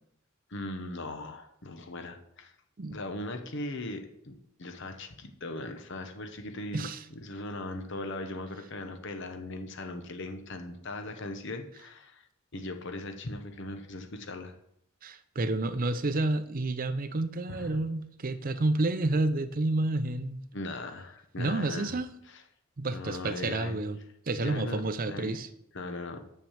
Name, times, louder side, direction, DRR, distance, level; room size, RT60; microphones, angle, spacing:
voice 1, 0.5-2.5 2.9-4.3 4.6-6.9 7.2-12.2 12.5-14.5 17.5-17.8 20.5-21.9 22.3-22.4 22.9-23.8 24.4-25.4 25.7-26.2, left 2 dB, 60° left, 6 dB, 1.0 m, -39 dB
voice 2, 15.0-20.4 21.4-22.1 22.8-24.0 24.3-25.5, right 2 dB, 40° right, 12 dB, 0.6 m, -30 dB
6.6 x 5.8 x 7.3 m, 0.74 s
head